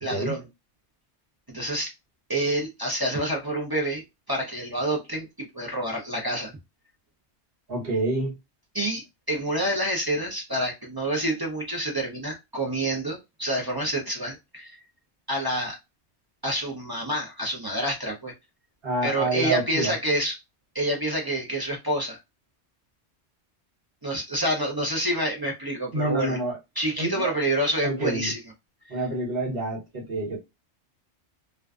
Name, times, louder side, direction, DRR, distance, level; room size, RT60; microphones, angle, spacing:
voice 1, 0.0-0.4 1.5-1.9 2.3-6.5 8.7-14.8 15.3-15.8 16.4-18.3 19.0-20.4 20.7-22.2 24.0-26.4 26.8-28.4 28.9-29.0, right 1 dB, 30° right, 0.4 m, -28 dB
voice 2, 7.7-8.3 18.8-19.9 25.9-26.6 27.0-27.3 27.8-28.3 28.9-30.4, right 2 dB, 55° right, 1.3 m, -27 dB
2.4 x 2.2 x 2.3 m
omnidirectional pair, 1.2 m